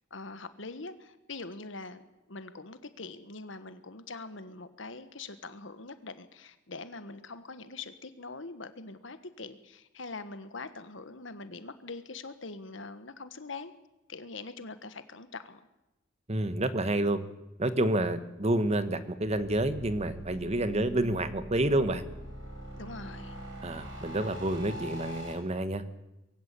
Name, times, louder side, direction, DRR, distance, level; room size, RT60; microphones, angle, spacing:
voice 1, 0.1-13.7 14.1-15.6 22.7-23.4, left 3 dB, 70° left, 11 dB, 1.5 m, -43 dB
voice 2, 16.3-17.2 17.6-22.0 23.6-25.8, right 1 dB, 35° right, 11 dB, 1.3 m, -29 dB
sound 1, 19.2-25.3, right 1 dB, 70° right, 5.7 m, -43 dB
22.0 x 16.0 x 8.4 m, 0.98 s
head